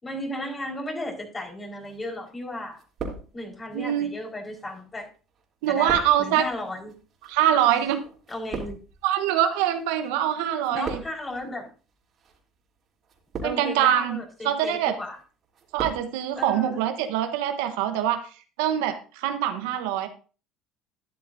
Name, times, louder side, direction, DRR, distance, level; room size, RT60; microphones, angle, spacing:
voice 1, 0.0-2.8 3.3-5.1 5.7-6.9 8.3-8.8 10.7-11.7 13.4-15.2 16.4-16.8, left 1 dB, 25° left, 1 dB, 4.6 m, -34 dB
sound 1, 1.8-2.4 2.7-3.7 4.5-10.1 10.4-11.4 12.1-12.4 13.0-13.8 14.3-14.7 15.1-16.1 16.3-16.4, right 4 dB, 45° right, 3.2 m, -38 dB
voice 2, 3.7-4.1 5.6-6.4 7.3-8.0 9.0-11.0 13.4-14.9 15.7-18.3 18.6-20.1, right 11 dB, 75° right, 8 dB, 1.1 m, -24 dB
12.5 x 10.5 x 2.7 m, 0.36 s
hypercardioid pair, 75°, 0 cm